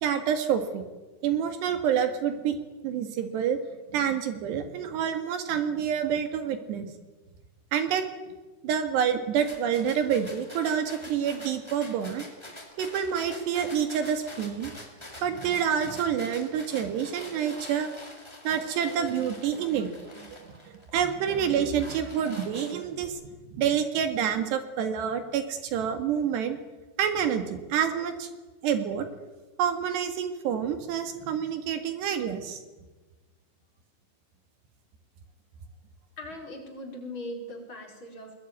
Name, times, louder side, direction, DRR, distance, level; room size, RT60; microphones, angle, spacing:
voice 1, 0.0-0.8 1.2-2.6 2.8-3.6 3.9-6.9 7.7-8.0 8.6-12.2 12.8-14.7 15.2-17.9 18.5-19.9 20.2-20.6 20.9-23.1 23.5-26.6 27.0-28.3 28.6-29.1 29.6-32.6, right 8 dB, 65° right, 8 dB, 3.8 m, -27 dB
sound 1, 9.4-21.0 21.5-23.0, left 1 dB, 5° left, 3.7 m, -46 dB
voice 2, 36.2-38.4, left 1 dB, 25° left, 1 dB, 5.0 m, -39 dB
21.5 x 21.5 x 9.7 m, 1.2 s
omnidirectional pair, 5.5 m